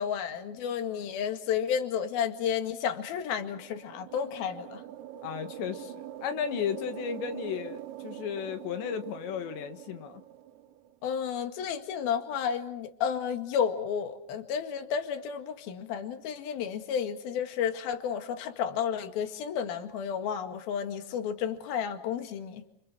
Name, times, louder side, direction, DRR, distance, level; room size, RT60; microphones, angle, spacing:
voice 1, 0.0-4.8 11.0-22.6, left 8 dB, 65° left, 3.6 m, -32 dB
sound 1, 3.3-10.9, right 12 dB, 90° right, 3.5 m, -44 dB
voice 2, 5.2-10.2, left 8 dB, 80° left, 3.9 m, -34 dB
29.5 x 28.5 x 6.2 m
omnidirectional pair, 5.0 m